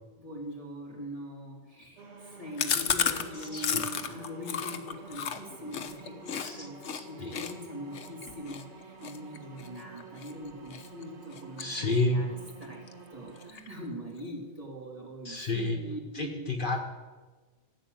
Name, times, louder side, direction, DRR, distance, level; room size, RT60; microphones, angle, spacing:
voice 1, 0.2-12.8 13.1-16.5, equal, 30° right, -2 dB, 3.2 m, -42 dB
sound 1, 2.0-13.5, right 5 dB, 75° right, 1.8 m, -49 dB
Chewing mastication, 2.6-6.5 6.8-7.0 7.3-10.3 10.7-11.0 11.3-12.2 12.5-12.6 12.9-13.0 13.3-13.9, left 7 dB, 80° left, 1.3 m, -33 dB
voice 2, 6.9-7.3 11.6-12.2 15.2-15.8 16.1-16.8, left 2 dB, 50° left, 3 dB, 1.3 m, -30 dB
14.5 x 9.0 x 7.9 m, 1.3 s
omnidirectional pair, 1.2 m